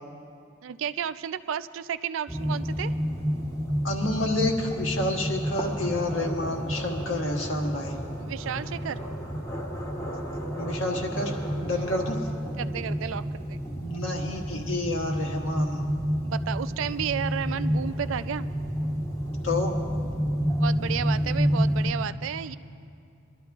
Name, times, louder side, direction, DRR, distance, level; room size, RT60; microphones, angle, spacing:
voice 1, 0.6-2.9 8.2-9.0 12.6-13.6 16.2-18.5 20.6-22.6, right 8 dB, 70° right, 14 dB, 0.4 m, -32 dB
sound 1, 2.3-21.9, equal, 15° left, 1.3 m, -30 dB
voice 2, 3.8-8.0 10.6-12.2 13.8-15.9 19.4-19.7, left 2 dB, 70° left, 1 dB, 1.5 m, -29 dB
22.0 x 12.5 x 3.5 m, 2.4 s
head